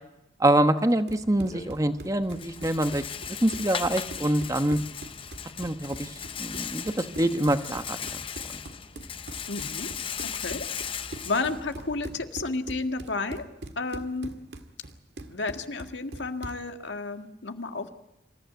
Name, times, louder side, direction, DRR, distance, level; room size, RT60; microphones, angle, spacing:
voice 1, 0.4-4.8 5.6-6.1 6.4-8.2 8.5-8.6, right 1 dB, 20° right, 9 dB, 1.1 m, -25 dB
Run, 0.9-16.7, right 2 dB, 65° right, 1.7 m, -43 dB
Rattle, 1.2-12.3, left 7 dB, 30° left, 0.7 m, -38 dB
voice 2, 9.5-9.9 10.2-10.7 10.9-13.5 13.7-14.3 15.3-17.9, left 3 dB, 85° left, 6 dB, 1.8 m, -32 dB
27.0 x 14.5 x 9.2 m, 0.92 s
head